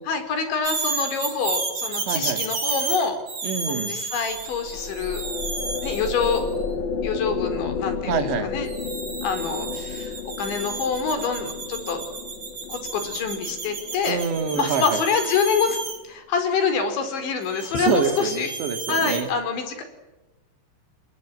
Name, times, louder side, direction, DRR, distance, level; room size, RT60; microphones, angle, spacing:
voice 1, 0.1-3.2 3.7-5.2 5.8-6.5 7.0-8.7 9.2-12.1 12.7-14.2 14.5-15.8 16.0-18.5 18.9-19.8, left 5 dB, 85° left, 8 dB, 6.9 m, -26 dB
sound 1, 0.6-6.5 8.7-16.0 17.5-19.2, right 4 dB, 40° right, 5.7 m, -32 dB
voice 2, 2.1-2.4 3.4-3.9 8.1-8.5 14.1-15.0 17.9-19.3, right 7 dB, 75° right, 8 dB, 4.6 m, -26 dB
sound 2, 4.3-15.7, left 5 dB, 65° left, 1.2 m, -32 dB
30.0 x 21.0 x 9.4 m, 1.0 s
omnidirectional pair, 5.1 m